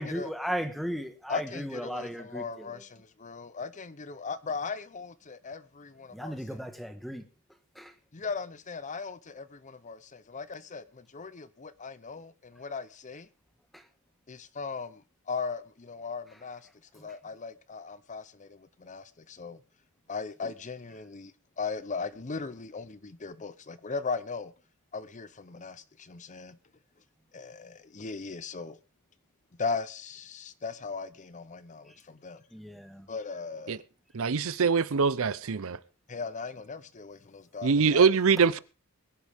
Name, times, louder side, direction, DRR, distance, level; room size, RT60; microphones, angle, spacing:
voice 1, 0.0-2.8 6.1-7.2 7.8-7.9 13.7-13.8 32.5-33.1, equal, ahead, 1.4 m, -36 dB
voice 2, 1.3-2.9 3.2-6.3 8.1-10.8 11.1-12.3 12.6-13.3 14.3-14.9 15.3-16.6 17.0-18.5 18.8-19.0 19.4-19.6 20.1-21.3 21.6-24.5 24.9-25.8 26.1-26.5 27.3-28.7 29.6-31.8 32.2-32.4 33.1-33.8 36.1-38.1, left 4 dB, 35° left, 0.7 m, -37 dB
voice 3, 34.1-35.8 37.6-38.6, right 5 dB, 65° right, 0.6 m, -23 dB
21.5 x 11.0 x 3.5 m
head